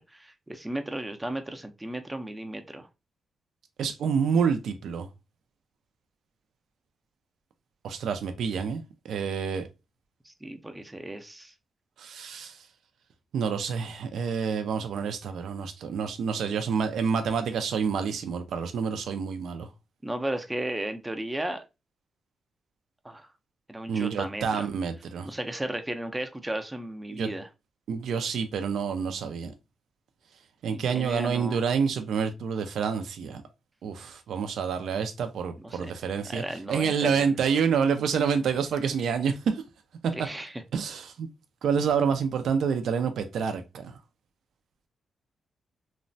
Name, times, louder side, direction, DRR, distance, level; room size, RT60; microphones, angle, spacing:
voice 1, 0.1-2.9 10.2-11.5 20.0-21.6 23.0-23.3 23.7-24.7 25.2-27.5 30.7-31.6 35.6-35.9 36.2-37.4 40.1-40.6, right 1 dB, 10° right, 0.4 m, -35 dB
voice 2, 3.8-5.1 7.8-9.7 12.0-12.7 13.3-19.7 23.9-25.3 27.1-27.3 27.9-29.5 30.6-33.4 33.8-39.6 40.0-40.1 40.7-41.3 41.6-44.0, right 6 dB, 80° right, 0.3 m, -28 dB
3.0 x 2.1 x 2.5 m
cardioid pair, 115°, 0 cm